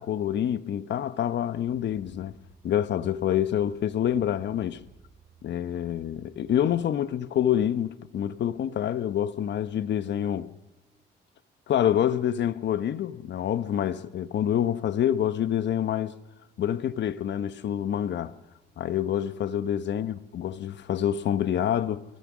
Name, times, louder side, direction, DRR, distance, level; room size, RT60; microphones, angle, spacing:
voice 1, 0.0-2.3 2.6-4.8 5.4-10.5 11.7-16.1 16.6-18.3 18.8-22.0, left 10 dB, 65° left, 1.1 m, -27 dB
sound 1, 1.7-6.8, right 5 dB, 35° right, 5.5 m, -57 dB
23.5 x 19.5 x 6.2 m
cardioid pair, 90°, 20 cm